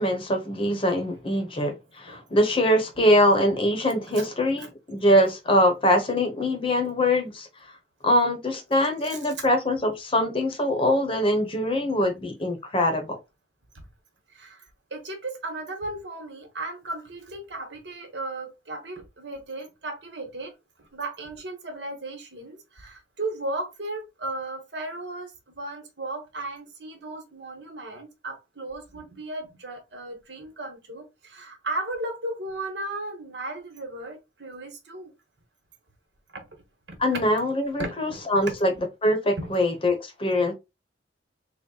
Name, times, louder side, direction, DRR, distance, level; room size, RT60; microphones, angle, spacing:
voice 1, 0.0-7.5 8.0-13.2 37.0-38.7 39.0-40.5, left 1 dB, 30° left, 0.8 m, -23 dB
voice 2, 14.3-20.5 20.8-35.1 36.3-36.4 36.9-37.2 37.8-38.2 38.4-38.5 39.4-39.6, right 2 dB, 75° right, 1.2 m, -35 dB
3.9 x 2.1 x 3.8 m
head